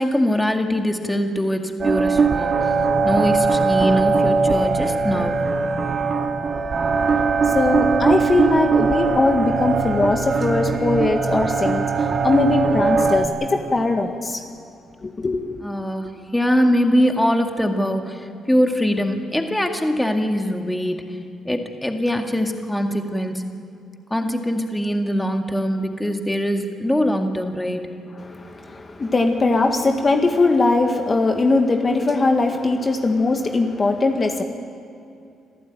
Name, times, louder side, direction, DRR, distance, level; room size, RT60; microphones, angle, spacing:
voice 1, 0.0-2.7 3.0-5.4 15.6-21.0 21.4-23.4 24.1-27.9, equal, 10° left, 4 dB, 2.1 m, -22 dB
sound 1, 1.8-13.3, right 4 dB, 45° right, 2.2 m, -20 dB
voice 2, 7.5-11.9 12.2-14.4 15.0-15.6 28.2-34.4, left 3 dB, 30° left, 4 dB, 1.8 m, -20 dB
26.5 x 14.5 x 9.3 m, 2.6 s
cardioid pair, 90°, 0 cm